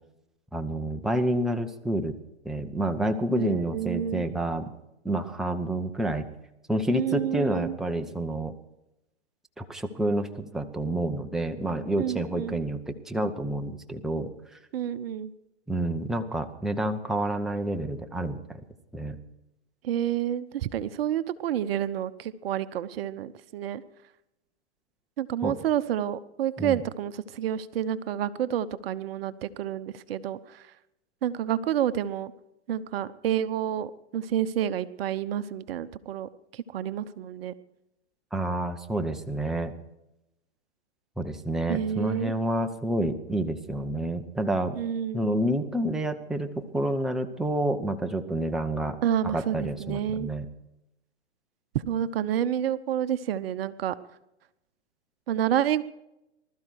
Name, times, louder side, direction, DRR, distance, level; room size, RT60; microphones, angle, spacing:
voice 1, 0.5-2.1 2.4-4.7 5.0-6.3 6.7-8.5 9.6-14.3 15.7-18.6 18.9-19.2 25.4-25.5 26.6-26.8 38.3-39.7 41.2-44.8 45.1-49.0 49.2-50.5, right 1 dB, ahead, 5 dB, 0.9 m, -29 dB
voice 2, 3.4-4.2 6.9-7.8 12.0-12.6 14.7-15.3 19.8-23.8 25.2-30.6 31.2-32.3 32.7-37.5 41.7-42.3 44.8-45.2 49.0-50.3 51.9-53.9 55.3-55.8, right 10 dB, 55° right, 14 dB, 0.9 m, -29 dB
20.0 x 13.0 x 4.7 m, 0.88 s
hypercardioid pair, 125°, 34 cm